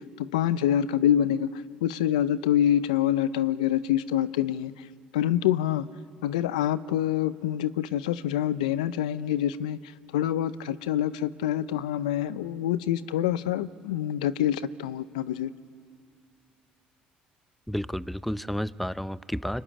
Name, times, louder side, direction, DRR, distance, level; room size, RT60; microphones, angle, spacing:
voice 1, 0.2-1.5 1.8-4.7 5.1-5.9 6.2-9.8 10.1-15.5, left 11 dB, 90° left, 16 dB, 0.6 m, -26 dB
voice 2, 17.7-19.6, equal, ahead, 17 dB, 0.7 m, -31 dB
24.0 x 23.0 x 9.9 m, 2.2 s
hypercardioid pair, 60°, 4 cm